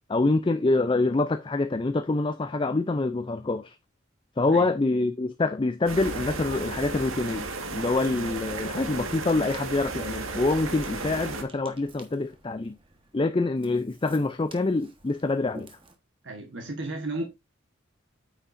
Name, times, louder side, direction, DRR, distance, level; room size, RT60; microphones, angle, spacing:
voice 1, 0.1-3.8 4.4-12.8 13.1-15.8, left 2 dB, 25° left, 0.4 m, -26 dB
sound 1, 5.9-11.4, right 3 dB, 85° right, 1.7 m, -34 dB
Ocean, 9.2-16.0, right 2 dB, 25° right, 1.3 m, -51 dB
voice 2, 16.2-17.3, right 2 dB, 65° right, 1.3 m, -33 dB
9.1 x 6.9 x 2.6 m
head